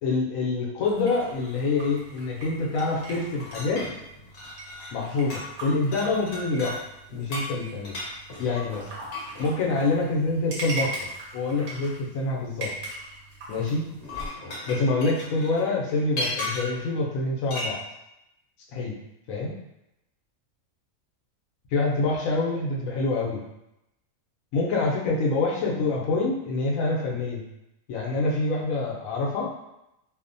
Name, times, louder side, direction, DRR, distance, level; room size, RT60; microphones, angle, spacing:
voice 1, 0.0-3.9 4.9-6.8 7.1-8.0 8.4-8.8 9.4-10.9 11.3-12.7 13.5-13.9 14.7-17.8 18.7-19.0 19.3-19.5 21.7-23.4 24.5-27.4 27.9-29.5, left 3 dB, 85° left, -2 dB, 1.0 m, -26 dB
sound 1, 0.8-14.3, right 2 dB, 55° right, 1.0 m, -40 dB
sound 2, 3.4-5.1 5.3-5.6 5.9-6.8 7.3-9.5 10.8-10.9 13.9-16.8 17.5-17.8, left 2 dB, 60° left, 1.1 m, -35 dB
2.8 x 2.0 x 2.5 m, 0.88 s
omnidirectional pair, 1.4 m